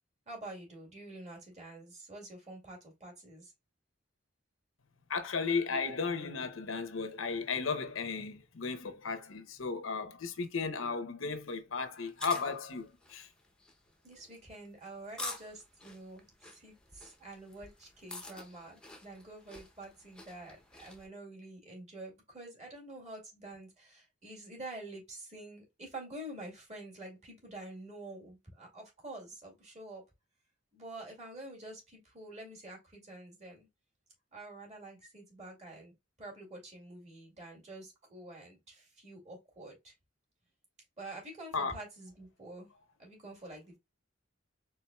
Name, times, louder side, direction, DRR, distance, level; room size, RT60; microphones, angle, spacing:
voice 1, 0.3-3.5 14.0-30.0 30.7-33.7 34.3-35.9 36.2-39.9 41.0-42.7 43.0-43.8, right 2 dB, 35° right, 2.2 m, -48 dB
voice 2, 5.1-13.3 41.5-41.7, left 4 dB, 85° left, 0.9 m, -35 dB
sound 1, 12.0-21.1, left 2 dB, 5° left, 0.7 m, -48 dB
4.5 x 3.7 x 2.3 m
head